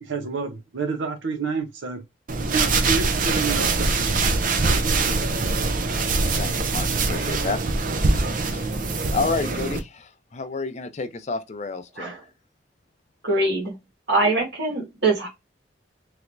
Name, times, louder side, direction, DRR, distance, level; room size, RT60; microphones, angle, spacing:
voice 1, 0.0-2.0 2.5-5.7, right 4 dB, 85° right, 0.7 m, -30 dB
sound 1, 2.3-9.8, right 3 dB, 45° right, 0.5 m, -23 dB
voice 2, 6.4-7.6 8.0-8.7 9.1-12.1, left 4 dB, 35° left, 0.5 m, -30 dB
voice 3, 13.2-13.7 14.1-15.3, right 2 dB, 65° right, 1.7 m, -23 dB
3.3 x 3.0 x 2.5 m
head